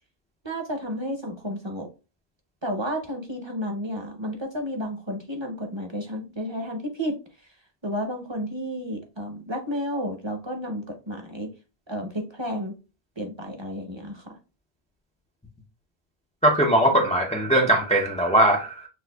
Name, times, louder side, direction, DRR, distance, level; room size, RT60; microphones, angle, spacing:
voice 1, 0.4-1.9 2.6-7.2 7.4-7.5 7.8-11.5 11.9-12.7 13.2-14.4, equal, 30° right, 0.7 m, -32 dB
voice 2, 16.4-18.9, right 1 dB, 10° left, 0.3 m, -20 dB
6.2 x 2.5 x 2.2 m
omnidirectional pair, 1.0 m